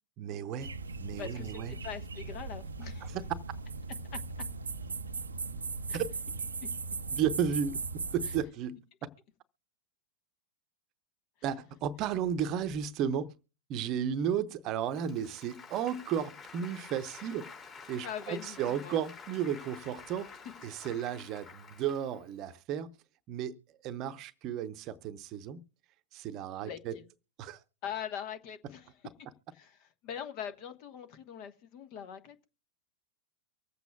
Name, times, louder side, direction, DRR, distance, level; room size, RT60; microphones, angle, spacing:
voice 1, 0.2-0.7 1.0-1.8 3.0-3.2 5.9-6.0 7.1-7.8 8.1-9.1 11.4-13.3 13.7-17.5 17.9-20.3 20.6-22.9 23.3-23.6 23.8-25.6 26.1-26.9 27.4-27.6, right 8 dB, 40° right, 0.8 m, -33 dB
sound 1, 0.6-8.4, right 4 dB, 85° right, 0.5 m, -38 dB
voice 2, 1.2-3.2 4.1-4.2 5.9-6.0 18.0-19.0 26.6-27.0 27.8-28.9 29.5-32.5, left 8 dB, 45° left, 1.3 m, -42 dB
Applause, 14.9-22.3, left 5 dB, 30° left, 4.1 m, -50 dB
24.0 x 8.1 x 2.3 m
figure-of-eight pair, 95°, 0 cm